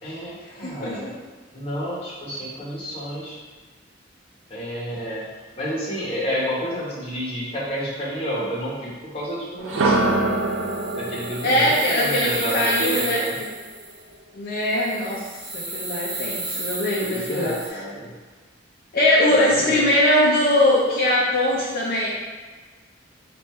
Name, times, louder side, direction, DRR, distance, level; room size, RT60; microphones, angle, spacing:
voice 1, 0.0-1.1 1.5-3.4 4.5-5.2 5.6-10.2 10.9-13.3 17.0-18.1 19.3-19.8, equal, 30° left, -7 dB, 1.0 m, -30 dB
voice 2, 0.6-1.1 11.4-13.2 14.3-15.3 15.5-17.8 18.9-22.1, left 1 dB, 50° left, -9 dB, 0.7 m, -21 dB
sound 1, 9.6-13.6, right 2 dB, 80° right, 0.4 m, -25 dB
sound 2, 10.0-14.0 14.7-17.7, right 2 dB, 25° right, 0.6 m, -33 dB
3.3 x 2.6 x 4.2 m, 1.4 s
head